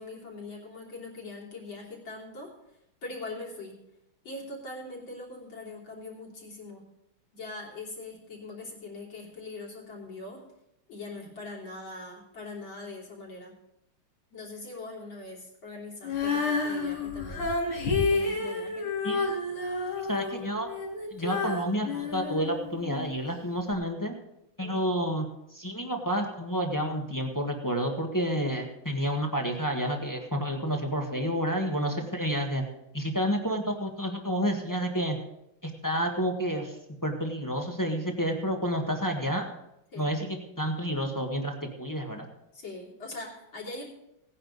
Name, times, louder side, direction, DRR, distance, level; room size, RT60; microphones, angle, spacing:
voice 1, 0.0-2.5 3.0-3.8 4.2-6.9 7.3-10.4 10.9-13.5 14.3-17.5 18.1-18.9 24.6-24.9 31.9-32.1 39.9-40.1 42.5-43.8, left 2 dB, 65° left, -3 dB, 3.9 m, -42 dB
Female singing, 16.0-23.1 23.7-23.8, left 3 dB, 85° left, 3.3 m, -30 dB
voice 2, 20.1-20.7 21.1-24.1 24.6-25.3 25.5-32.6 32.9-35.2 35.6-39.5 40.0-42.3, equal, 10° left, 2 dB, 1.1 m, -30 dB
17.5 x 10.0 x 4.0 m, 0.84 s
omnidirectional pair, 2.3 m